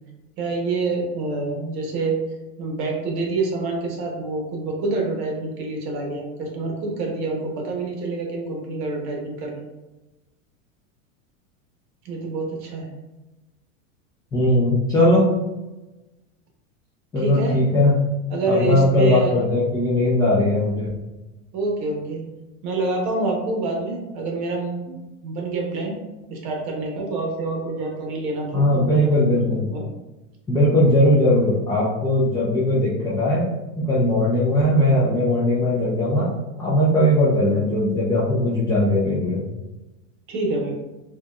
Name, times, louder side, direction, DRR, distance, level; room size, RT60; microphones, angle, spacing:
voice 1, 0.4-2.2 2.6-9.7 12.0-12.9 17.2-17.6 18.3-19.3 21.5-22.2 22.6-26.0 26.3-29.1 29.7-29.8 40.3-40.8, right 3 dB, 45° right, 0 dB, 1.0 m, -27 dB
voice 2, 14.3-15.3 17.1-17.9 18.5-20.9 28.5-29.7 30.5-33.5 33.8-36.3 36.6-39.4, left 1 dB, 10° left, -8 dB, 0.3 m, -19 dB
4.3 x 2.3 x 2.4 m, 1.0 s
supercardioid pair, 145°, 39 cm